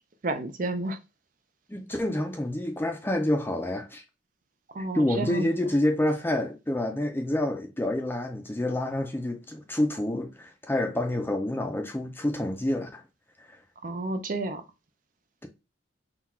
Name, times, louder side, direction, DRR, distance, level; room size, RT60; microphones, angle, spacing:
voice 1, 0.2-1.0 4.7-5.5 13.8-14.6, right 2 dB, 40° right, 0.5 m, -31 dB
voice 2, 1.7-4.0 4.9-13.0 13.4-13.6, left 1 dB, 10° left, 0.4 m, -28 dB
3.8 x 2.4 x 4.3 m
head